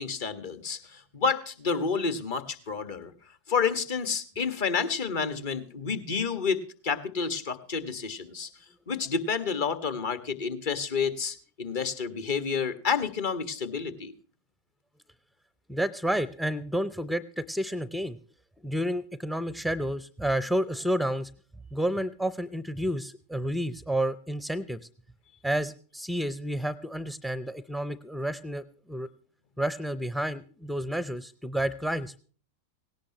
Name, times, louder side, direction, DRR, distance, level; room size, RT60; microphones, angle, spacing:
voice 1, 0.0-3.1 3.5-8.5 8.9-14.1, left 5 dB, 55° left, 12 dB, 1.6 m, -29 dB
voice 2, 15.7-18.2 18.6-21.3 21.7-24.8 25.4-29.1 29.6-32.2, right 1 dB, ahead, 19 dB, 0.6 m, -30 dB
17.5 x 17.5 x 3.0 m, 0.42 s
figure-of-eight pair, 90°, 0 cm